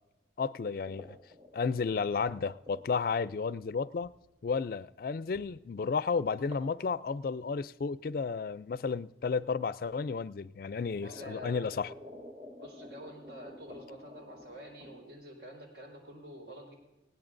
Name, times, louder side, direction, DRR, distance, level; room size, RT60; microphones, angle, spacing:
voice 1, 0.4-1.2 1.5-4.1 4.4-11.9, left 5 dB, 50° left, 0.3 m, -32 dB
sound 1, 0.9-3.3 4.0-4.1 5.3-5.5 5.8-5.9 6.5-6.7 7.0-7.8 9.0-9.1 10.0-10.1 10.5-15.1, left 1 dB, 35° right, 3.6 m, -50 dB
voice 2, 11.0-11.8 12.6-16.7, equal, 70° right, 4.7 m, -48 dB
19.5 x 17.5 x 2.6 m
head